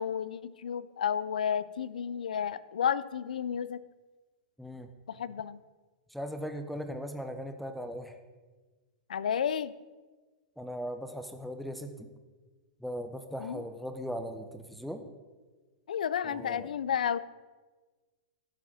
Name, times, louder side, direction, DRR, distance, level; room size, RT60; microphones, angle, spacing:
voice 1, 0.0-3.8 5.1-5.6 9.1-9.7 13.4-13.6 15.9-17.2, left 8 dB, 90° left, 17 dB, 0.4 m, -32 dB
voice 2, 6.1-8.2 10.6-12.1 12.8-15.0 16.2-16.7, equal, ahead, 7 dB, 0.7 m, -38 dB
11.5 x 4.0 x 7.4 m, 1.3 s
hypercardioid pair, 135°, 4 cm